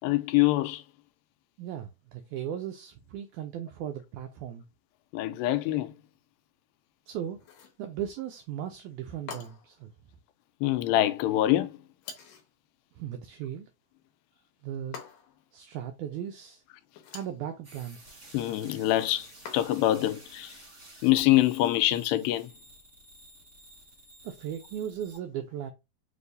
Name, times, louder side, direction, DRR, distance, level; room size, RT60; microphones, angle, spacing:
voice 1, 0.0-0.8 5.1-5.9 10.6-11.8 18.3-19.3 19.5-20.5 21.0-22.5, left 15 dB, 90° left, 2.3 m, -25 dB
voice 2, 1.6-4.6 7.1-7.4 7.8-9.9 12.9-13.7 14.6-15.0 15.5-16.6 17.1-18.2 24.2-25.7, right 10 dB, 90° right, 1.7 m, -37 dB
sound 1, 7.4-7.8 9.3-9.8 12.0-12.5 14.9-15.5 16.9-17.4 19.5-20.0, left 6 dB, 70° left, 2.3 m, -45 dB
sound 2, 17.6-25.2, right 1 dB, 40° right, 1.0 m, -52 dB
6.3 x 2.8 x 2.6 m
omnidirectional pair, 4.1 m